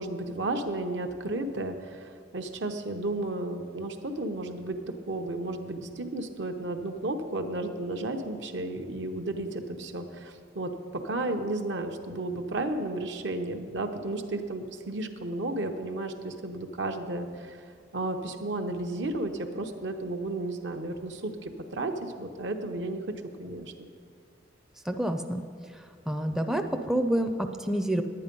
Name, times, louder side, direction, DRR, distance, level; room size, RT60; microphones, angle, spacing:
voice 1, 0.0-17.6 17.9-23.9, right 2 dB, 70° right, 5 dB, 0.9 m, -33 dB
voice 2, 24.9-25.4 26.1-28.0, right 1 dB, ahead, 5 dB, 0.4 m, -28 dB
10.5 x 9.7 x 5.3 m, 2.2 s
head